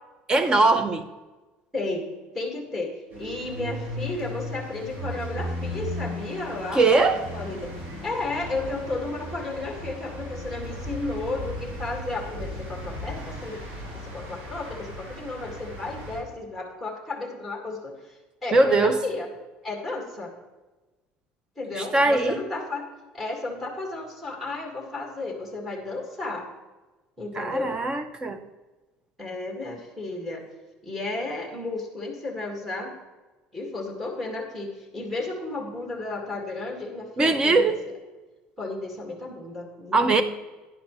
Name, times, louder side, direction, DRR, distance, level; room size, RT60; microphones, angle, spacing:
voice 1, 0.3-1.0 6.7-7.3 18.5-19.0 21.8-22.4 27.3-28.4 37.2-37.8 39.9-40.2, right 3 dB, 20° right, 10 dB, 0.8 m, -21 dB
voice 2, 1.7-2.0 2.3-6.8 7.1-7.7 8.0-13.6 13.9-19.3 19.6-20.3 21.6-22.9 23.1-26.5 27.2-27.8 29.2-30.4 30.8-33.0 33.5-37.9 38.6-40.2, left 2 dB, 5° right, 0 dB, 2.0 m, -33 dB
sound 1, 3.1-16.2, equal, 60° right, 3.7 m, -36 dB
11.0 x 10.0 x 3.1 m, 1.2 s
cardioid pair, 150°, 4 cm